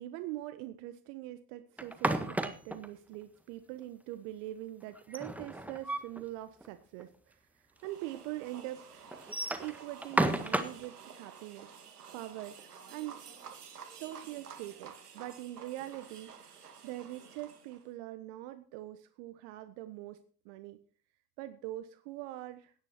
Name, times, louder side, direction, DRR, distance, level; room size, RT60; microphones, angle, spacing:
voice 1, 0.0-9.2 9.6-11.7 12.1-12.6 12.9-13.2 14.0-20.8 21.4-22.7, right 15 dB, 55° right, 11 dB, 1.3 m, -43 dB
sound 1, 1.8-2.9 5.0-6.2 6.6-6.7 7.0-7.1 7.8-7.9 9.1-10.9, right 1 dB, 5° right, 1.6 m, -32 dB
sound 2, 7.8-17.9, right 6 dB, 85° right, 2.4 m, -51 dB
17.0 x 10.5 x 4.4 m, 0.42 s
hypercardioid pair, 85°, 45 cm